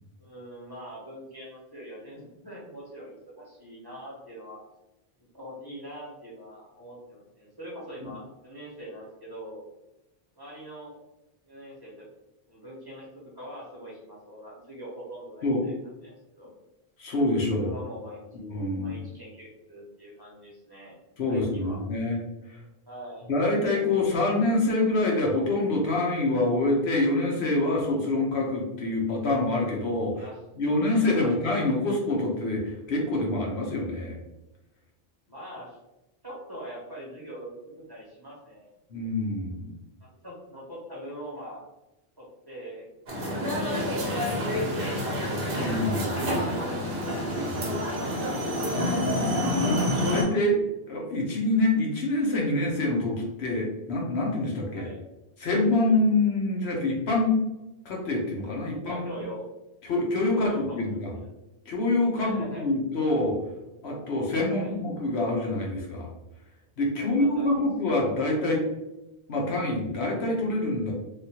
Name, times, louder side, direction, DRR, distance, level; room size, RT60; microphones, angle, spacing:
voice 1, 0.2-4.6 5.3-9.6 10.4-10.9 11.4-12.1 12.5-15.7 16.0-16.5 17.5-18.3 18.8-21.0 21.3-21.8 22.9-23.3 30.1-30.4 31.1-31.4 35.3-35.8 36.2-38.7 40.0-41.6 42.2-42.9 43.3-45.1 46.1-47.3 54.7-55.0 58.9-59.5 60.3-61.0 62.1-62.7 64.5-64.8 67.0-67.7, equal, 25° right, -6 dB, 1.0 m, -42 dB
voice 2, 17.0-17.7 18.5-19.0 21.2-22.2 23.3-30.3 30.6-34.2 38.9-39.7 45.6-46.1 48.7-49.8 50.1-50.6 50.9-54.9 55.4-57.4 57.8-59.1 59.8-61.1 61.7-63.4 63.8-66.1 66.8-68.6 69.3-70.9, left 2 dB, 85° left, -1 dB, 1.1 m, -26 dB
sound 1, 43.1-50.2, equal, 60° right, 1.0 m, -28 dB
3.4 x 2.4 x 2.8 m, 0.96 s
omnidirectional pair, 1.0 m